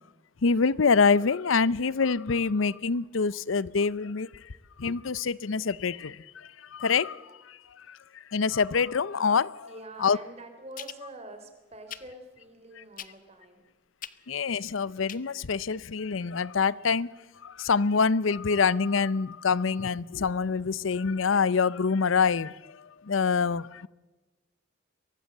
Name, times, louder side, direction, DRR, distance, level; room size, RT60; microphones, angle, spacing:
voice 1, 0.4-4.3 4.8-7.6 7.9-8.0 8.3-9.7 10.0-10.2 14.3-17.1 17.4-22.8 23.0-23.9, left 5 dB, 85° left, 0.6 m, -26 dB
voice 2, 9.6-13.7, right 2 dB, 30° right, 3.3 m, -46 dB
sound 1, 10.7-11.0 11.9-12.1 12.9-13.3 14.0-14.2 15.1-15.2 15.5-15.6, left 10 dB, 45° left, 0.9 m, -40 dB
23.5 x 17.5 x 7.7 m
head